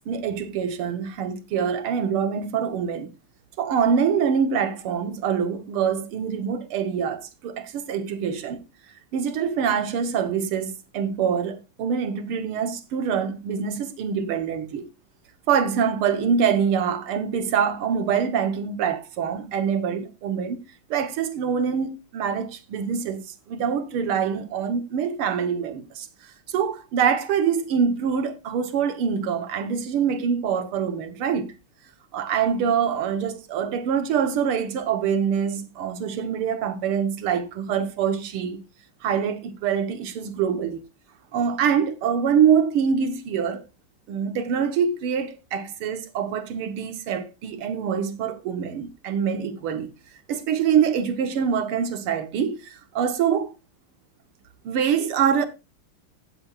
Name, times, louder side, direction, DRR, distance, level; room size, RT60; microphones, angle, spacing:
voice 1, 0.1-3.1 3.6-8.6 9.1-14.9 15.5-20.6 20.9-26.1 26.5-31.5 32.1-38.6 39.0-40.8 41.3-43.6 44.1-49.9 50.3-53.5 54.7-55.5, right 7 dB, 80° right, 2.0 m, -25 dB
16.0 x 7.9 x 2.4 m
omnidirectional pair, 2.4 m